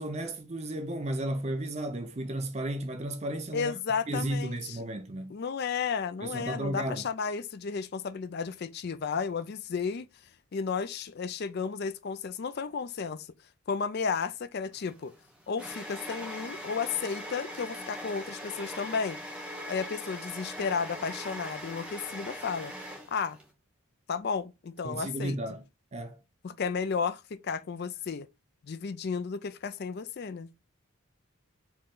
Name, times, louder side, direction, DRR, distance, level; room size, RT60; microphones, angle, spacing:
voice 1, 0.0-3.7 4.1-5.3 6.2-7.0 24.8-25.6 25.9-26.2, right 1 dB, 30° right, 0.5 m, -33 dB
voice 2, 3.5-4.8 5.3-10.1 10.5-13.3 13.7-15.1 15.5-19.2 19.7-22.7 23.1-23.4 24.1-25.4 26.4-28.3 28.6-30.5, left 5 dB, 45° left, 0.4 m, -33 dB
sound 1, 14.8-23.5, equal, 5° right, 1.0 m, -41 dB
4.5 x 3.1 x 3.7 m
head